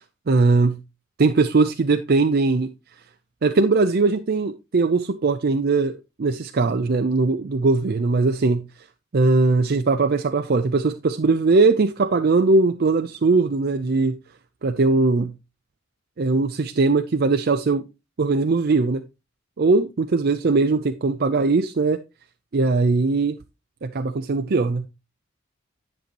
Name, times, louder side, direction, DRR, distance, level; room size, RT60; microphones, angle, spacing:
voice 1, 0.3-0.8 1.2-2.7 3.4-8.7 9.1-14.1 14.6-15.3 16.2-17.8 18.2-19.0 19.6-22.0 22.5-23.4 23.8-24.9, right 3 dB, 45° right, 0.5 m, -20 dB
10.5 x 6.7 x 2.9 m
head